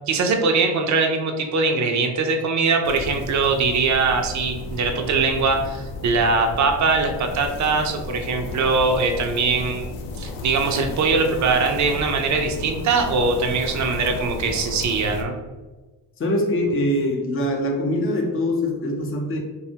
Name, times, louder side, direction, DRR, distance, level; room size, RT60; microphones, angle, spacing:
voice 1, 0.1-9.8 10.2-15.4, right 4 dB, 40° right, 4 dB, 0.5 m, -21 dB
sound 1, 2.8-15.2, left 3 dB, 80° left, 0.5 m, -33 dB
voice 2, 16.2-19.4, left 1 dB, 30° left, 1 dB, 0.6 m, -23 dB
2.6 x 2.3 x 2.7 m, 1.2 s
supercardioid pair, 55°, 44 cm